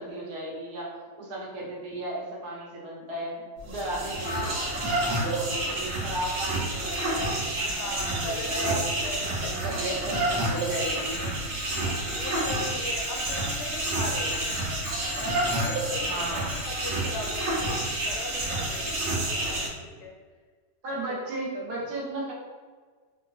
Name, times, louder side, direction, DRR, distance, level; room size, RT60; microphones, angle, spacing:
voice 1, 0.0-4.5 5.1-8.8 9.2-11.6 16.0-16.5 19.9-20.0 20.8-22.3, right 1 dB, 70° right, -4 dB, 1.4 m, -35 dB
sound 1, 3.6-19.7, right 2 dB, 90° right, 1.4 m, -29 dB
voice 2, 4.2-5.4 7.6-10.9 11.2-11.3 11.8-14.4 15.2-20.2 20.9-21.2 21.5-21.6, left 3 dB, 80° left, 1 dB, 1.1 m, -39 dB
Bell, 10.4-19.4, left 2 dB, 35° left, 0.8 m, -40 dB
3.2 x 2.9 x 2.5 m, 1.6 s
omnidirectional pair, 1.8 m